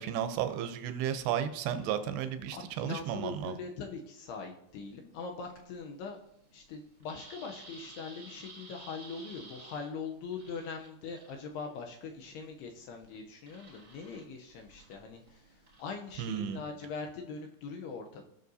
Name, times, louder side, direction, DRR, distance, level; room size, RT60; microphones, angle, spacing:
voice 1, 0.0-3.6 16.2-16.6, right 9 dB, 80° right, 9 dB, 2.5 m, -33 dB
voice 2, 2.5-6.2 6.5-18.3, left 5 dB, 80° left, 3 dB, 2.6 m, -42 dB
sound 1, 4.7-16.7, right 2 dB, 35° right, 1.3 m, -55 dB
17.5 x 6.5 x 2.7 m, 0.76 s
omnidirectional pair, 5.0 m